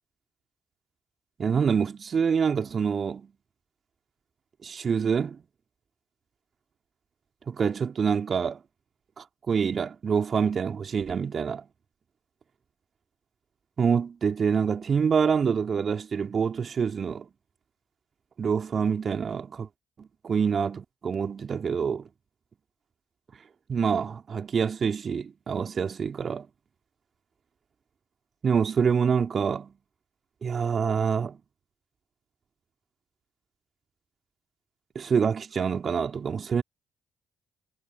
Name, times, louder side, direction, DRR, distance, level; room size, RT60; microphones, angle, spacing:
voice 1, 1.4-3.3 4.6-5.4 7.5-8.6 9.2-11.6 13.8-17.3 18.4-19.7 20.0-22.1 23.7-26.5 28.4-29.7 30.4-31.4 34.9-36.6, right 6 dB, 45° right, 3.4 m, -26 dB
figure-of-eight pair, 45°, 0 cm